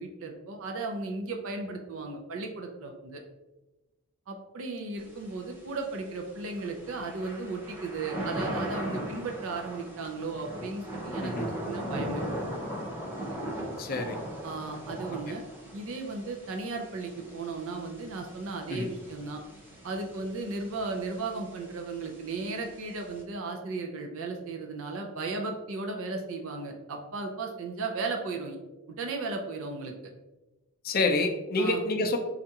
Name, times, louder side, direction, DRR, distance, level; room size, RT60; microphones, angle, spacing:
voice 1, 0.0-3.2 4.3-12.3 14.4-15.4 15.7-19.4 19.8-28.6 28.9-29.9 31.6-31.9, right 3 dB, 65° right, 3 dB, 0.5 m, -35 dB
Thunder / Rain, 5.0-23.2, equal, 10° right, 0.7 m, -39 dB
voice 2, 13.8-14.2 18.7-18.9 30.8-32.2, left 2 dB, 40° left, 5 dB, 0.4 m, -27 dB
4.5 x 2.5 x 2.7 m, 1.0 s
head